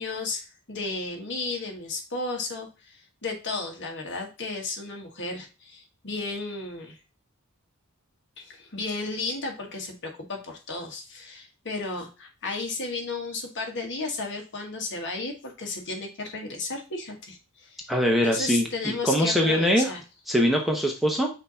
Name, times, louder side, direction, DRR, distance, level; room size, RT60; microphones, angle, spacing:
voice 1, 0.0-7.0 8.4-17.9 18.2-20.0, left 3 dB, 55° left, 2 dB, 1.7 m, -34 dB
voice 2, 17.9-19.9 20.3-21.3, equal, ahead, 1 dB, 0.9 m, -23 dB
5.9 x 2.9 x 5.5 m, 0.30 s
head